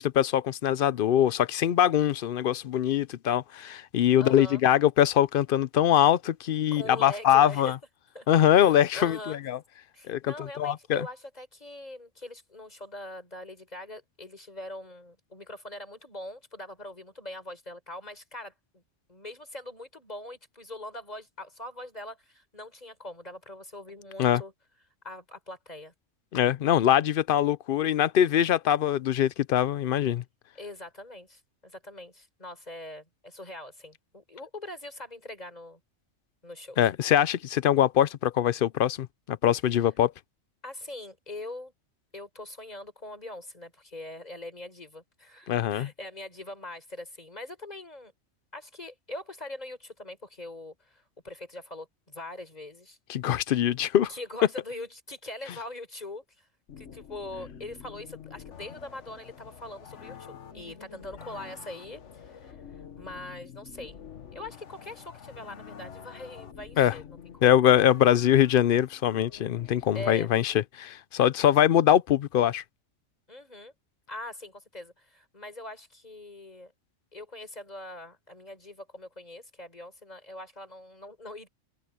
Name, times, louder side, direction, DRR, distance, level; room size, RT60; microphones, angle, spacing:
voice 1, 0.0-7.8 8.3-9.6 10.1-11.1 24.2-24.4 26.3-30.2 36.8-40.1 45.5-45.9 53.1-54.1 66.8-66.9 67.4-72.6, left 10 dB, 60° left, 0.7 m, -23 dB
voice 2, 4.2-4.6 6.7-7.7 8.1-8.3 8.6-9.4 9.9-18.8 19.1-24.5 25.0-25.9 30.5-35.8 36.4-36.8 39.7-39.8 40.6-41.7 42.1-48.1 48.5-53.0 54.1-56.5 56.8-62.6 63.0-64.0 64.3-67.5 69.9-70.3 73.3-73.7 74.1-76.7 77.1-81.5, left 1 dB, 35° left, 4.7 m, -42 dB
sound 1, 56.7-70.1, left 7 dB, 75° left, 1.4 m, -47 dB
omnidirectional pair, 1.2 m